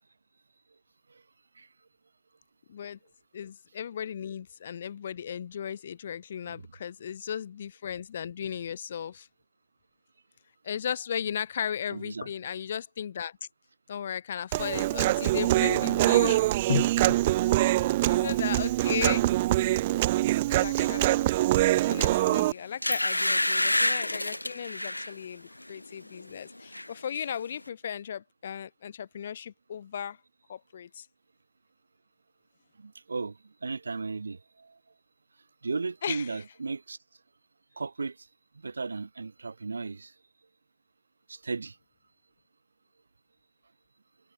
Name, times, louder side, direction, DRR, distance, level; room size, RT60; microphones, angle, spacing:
voice 1, 3.3-9.3 10.6-13.4 13.9-17.2 17.6-19.3 20.5-21.3 21.9-30.2 30.5-31.1 36.0-36.3, left 8 dB, 45° left, 1.1 m, -36 dB
voice 2, 11.9-12.3 32.8-34.7 35.6-37.0 37.8-38.2 38.6-40.1 41.3-41.8, right 4 dB, 70° right, 0.8 m, -35 dB
Human voice, 14.5-22.5, right 16 dB, 30° right, 0.5 m, -24 dB
sound 1, 22.1-22.3 22.8-25.1 25.6-25.8 26.1-26.9 27.1-27.2, left 1 dB, 90° left, 0.6 m, -28 dB
figure-of-eight pair, 140°, 0 cm